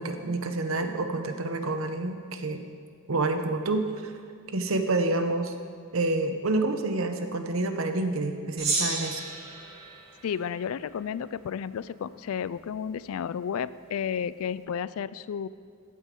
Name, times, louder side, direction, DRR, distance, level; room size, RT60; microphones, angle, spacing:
voice 1, 0.0-2.6 3.1-4.1 4.5-5.5 5.9-9.2, right 2 dB, 75° right, 7 dB, 0.9 m, -28 dB
Gong, 8.6-11.2, right 3 dB, 45° right, 2.6 m, -33 dB
voice 2, 10.2-15.5, left 7 dB, 85° left, 17 dB, 0.3 m, -32 dB
15.0 x 8.3 x 3.7 m, 2.1 s
head